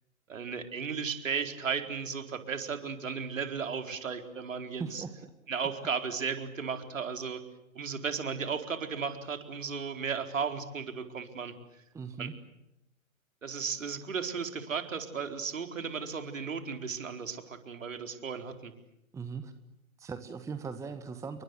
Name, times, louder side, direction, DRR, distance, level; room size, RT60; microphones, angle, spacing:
voice 1, 0.3-5.0 5.5-7.4 7.7-11.5 12.2-12.3 13.4-18.7, right 6 dB, 65° right, 7 dB, 4.4 m, -35 dB
voice 2, 4.8-5.3 11.9-12.3 19.1-19.5 20.0-21.4, right 5 dB, 5° right, 10 dB, 1.3 m, -39 dB
29.5 x 23.5 x 8.0 m, 0.84 s
figure-of-eight pair, 120°, 42 cm